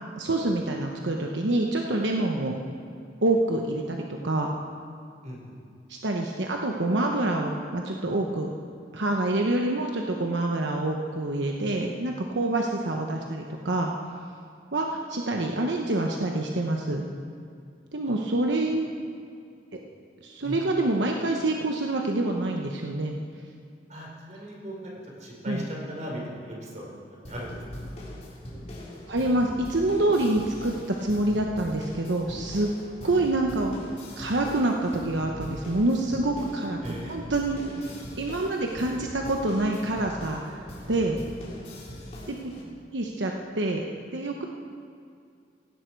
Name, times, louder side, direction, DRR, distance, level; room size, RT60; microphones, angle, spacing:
voice 1, 0.2-2.6 3.2-4.5 5.9-8.5 8.9-13.9 14.7-17.0 17.9-18.9 19.7-19.8 20.2-23.2 25.5-25.6 29.1-32.7 33.0-33.8 34.2-40.6 40.9-41.2 42.3-42.5 42.9-44.5, right 2 dB, 80° right, 1 dB, 1.1 m, -26 dB
voice 2, 5.2-5.6 12.9-13.0 20.4-20.6 23.9-26.9 27.3-27.9 33.0-33.1 36.8-37.1, equal, 40° right, -3 dB, 4.4 m, -38 dB
sound 1, 27.2-42.6, left 1 dB, 35° left, 3.8 m, -41 dB
17.5 x 16.5 x 4.7 m, 2.4 s
head